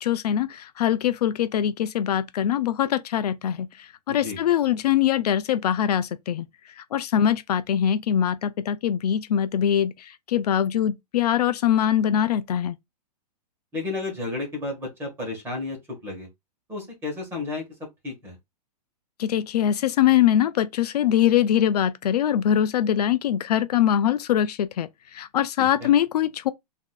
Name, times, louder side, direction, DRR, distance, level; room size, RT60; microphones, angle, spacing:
voice 1, 0.0-3.7 4.1-6.4 6.8-12.7 19.2-26.5, left 10 dB, 70° left, 0.4 m, -23 dB
voice 2, 4.1-4.4 13.7-15.8 16.0-16.3 16.7-17.6 18.0-18.3 25.6-25.9, left 3 dB, 10° right, 1.3 m, -32 dB
3.9 x 2.7 x 2.3 m
hypercardioid pair, 160°, 21 cm